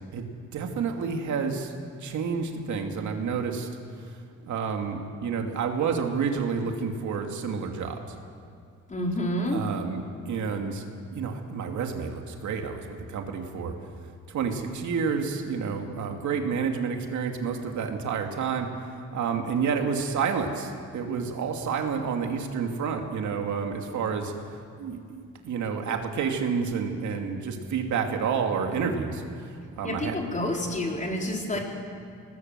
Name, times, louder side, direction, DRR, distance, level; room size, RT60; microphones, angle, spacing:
voice 1, 0.5-1.7 2.0-3.7 4.5-8.0 9.5-10.8 11.1-13.7 14.3-18.7 19.1-24.3 24.8-29.2 29.8-30.2, right 6 dB, 70° right, 3 dB, 2.6 m, -29 dB
voice 2, 8.9-9.7 29.8-31.6, left 1 dB, 25° left, 0 dB, 4.4 m, -28 dB
22.5 x 20.0 x 7.6 m, 2.3 s
cardioid pair, 90°, 30 cm